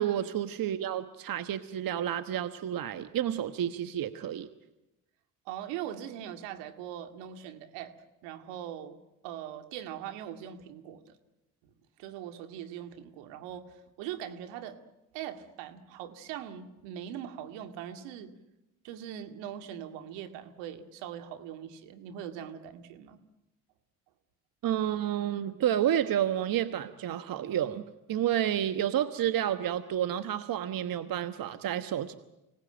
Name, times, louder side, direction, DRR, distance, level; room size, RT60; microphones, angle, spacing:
voice 1, 0.0-4.5 24.6-32.1, right 11 dB, 50° right, 11 dB, 1.3 m, -30 dB
voice 2, 5.5-7.9 8.2-9.0 9.2-11.2 12.0-14.8 15.1-18.3 18.8-23.2, right 10 dB, 80° right, 7 dB, 2.3 m, -41 dB
25.0 x 18.0 x 8.9 m, 0.97 s
supercardioid pair, 70°, 43 cm